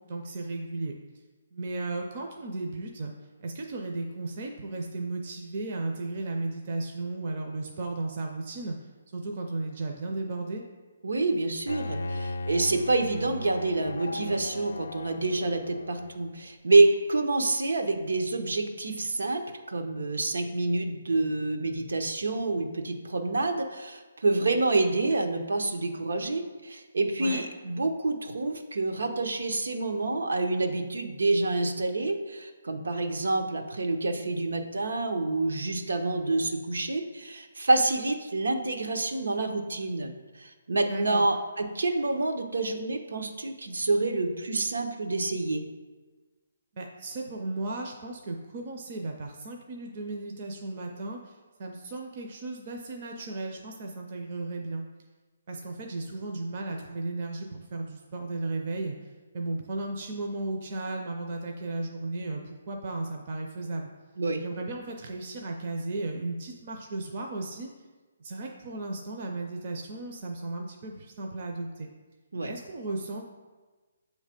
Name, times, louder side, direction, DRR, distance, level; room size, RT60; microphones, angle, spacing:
voice 1, 0.1-0.9 1.5-3.1 3.4-8.8 9.1-10.6 27.2-27.4 40.9-41.2 46.7-54.8 55.5-58.9 59.3-63.9 64.4-67.7 68.2-71.9 72.4-73.2, right 2 dB, 30° right, 1 dB, 0.4 m, -35 dB
voice 2, 11.0-40.1 40.4-45.6 64.2-64.4 72.3-72.5, right 2 dB, 90° right, 5 dB, 0.8 m, -27 dB
Bowed string instrument, 11.7-16.4, left 3 dB, 70° left, 0.3 m, -37 dB
7.5 x 3.2 x 5.0 m, 1.3 s
hypercardioid pair, 175°, 0 cm